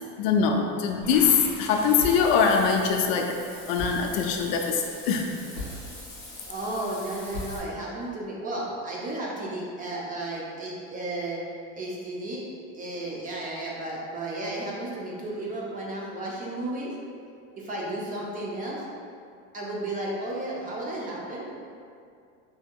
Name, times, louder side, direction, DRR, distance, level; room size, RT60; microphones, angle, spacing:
voice 1, 0.2-3.4 3.7-5.3, left 6 dB, 70° left, 2 dB, 0.5 m, -23 dB
Water / Bathtub (filling or washing), 1.0-7.6, left 1 dB, 10° left, 0.8 m, -44 dB
sound 1, 2.0-8.0, left 1 dB, 85° right, 1.4 m, -41 dB
voice 2, 6.5-12.4 12.7-16.9 17.6-18.8 19.5-21.5, right 1 dB, 25° right, -4 dB, 0.5 m, -33 dB
3.5 x 2.7 x 2.2 m, 2.3 s
supercardioid pair, 125°, 35 cm